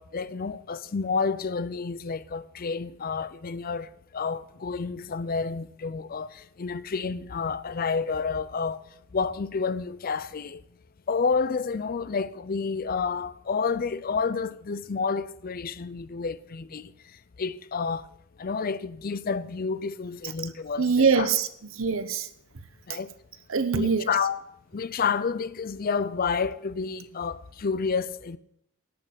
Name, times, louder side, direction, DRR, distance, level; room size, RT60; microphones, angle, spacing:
voice 1, 0.0-8.8 9.1-10.6 11.1-16.9 17.4-18.0 18.4-21.3 22.9-23.1 23.7-24.4 24.7-28.4, left 5 dB, 45° left, 0.5 m, -29 dB
voice 2, 20.8-22.3 23.5-24.1, right 5 dB, 70° right, 0.9 m, -24 dB
11.0 x 6.6 x 8.6 m
head